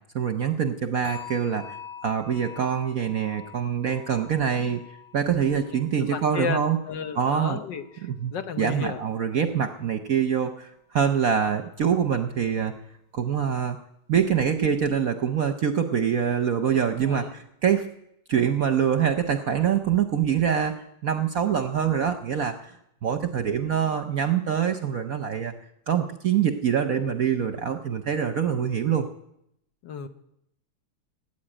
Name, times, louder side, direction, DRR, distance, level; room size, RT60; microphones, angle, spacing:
voice 1, 0.1-1.8 2.0-4.8 5.1-6.8 7.1-7.6 8.0-12.7 13.1-13.8 14.1-17.9 18.3-22.7 23.0-25.5 25.9-29.1, right 8 dB, 60° right, 8 dB, 1.0 m, -25 dB
sound 1, 1.0-8.1 8.4-8.8 9.3-9.4, left 6 dB, 80° left, 8.0 m, -46 dB
voice 2, 6.1-7.8 8.3-9.0 17.0-17.3 27.0-27.2 29.8-30.1, left 6 dB, 65° left, 9 dB, 1.6 m, -33 dB
17.5 x 9.3 x 8.9 m, 0.77 s
omnidirectional pair, 2.3 m